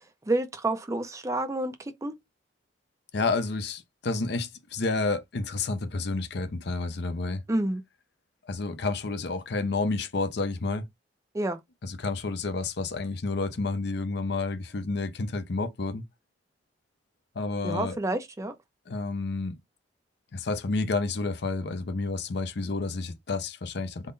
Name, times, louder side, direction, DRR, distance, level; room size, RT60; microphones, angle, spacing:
voice 1, 0.3-2.2 7.5-7.8 11.3-11.6 17.6-18.6, right 2 dB, 15° right, 0.5 m, -29 dB
voice 2, 3.1-7.4 8.4-10.9 11.8-16.0 17.3-18.0 18.9-19.5 20.3-24.1, left 3 dB, 60° left, 0.6 m, -30 dB
3.6 x 2.1 x 3.8 m
head